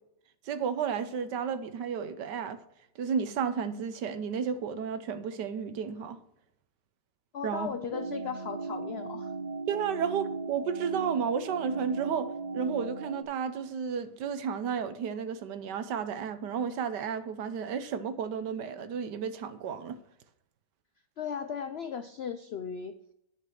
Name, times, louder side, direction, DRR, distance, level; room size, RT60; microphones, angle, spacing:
voice 1, 0.4-2.6 3.0-6.2 7.4-7.7 9.7-20.0, right 7 dB, 90° right, 1.5 m, -32 dB
voice 2, 7.3-9.3 21.2-23.0, left 7 dB, 85° left, 0.5 m, -36 dB
sound 1, 7.9-13.2, right 4 dB, 45° right, 0.5 m, -37 dB
10.5 x 5.2 x 5.9 m
omnidirectional pair, 1.8 m